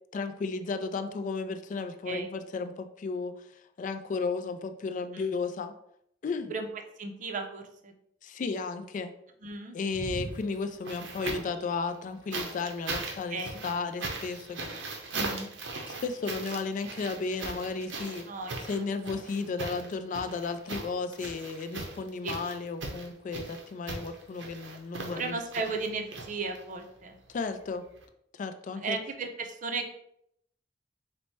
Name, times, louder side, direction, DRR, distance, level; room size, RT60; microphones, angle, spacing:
voice 1, 0.1-3.5 3.8-5.7 6.2-6.5 8.2-9.1 9.7-15.2 15.9-18.2 18.6-25.4 27.3-27.8 28.4-29.0, left 4 dB, 45° left, 9 dB, 0.3 m, -34 dB
voice 2, 7.0-7.9 9.4-9.8 13.3-13.6 15.1-15.5 18.3-18.8 22.2-22.4 25.1-27.2 28.8-29.9, right 3 dB, 45° right, 4 dB, 0.5 m, -35 dB
sound 1, 9.9-11.6 12.3-26.8 28.0-28.1, right 3 dB, 90° right, 0.7 m, -39 dB
4.2 x 2.1 x 4.5 m, 0.73 s
head